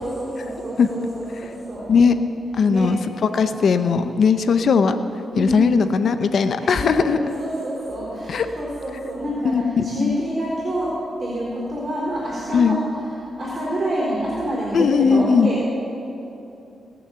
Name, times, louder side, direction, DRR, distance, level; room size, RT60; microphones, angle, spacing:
voice 1, 0.0-1.9 2.6-2.9 5.3-5.6 6.6-13.0 13.4-15.7, equal, 40° right, -6 dB, 4.0 m, -27 dB
voice 2, 2.6-5.0 5.4-7.2 8.3-8.5 9.4-10.2 12.5-12.8 14.7-15.5, left 5 dB, 65° left, 10 dB, 0.7 m, -18 dB
20.0 x 7.1 x 7.0 m, 2.9 s
cardioid pair, 65°, 0 cm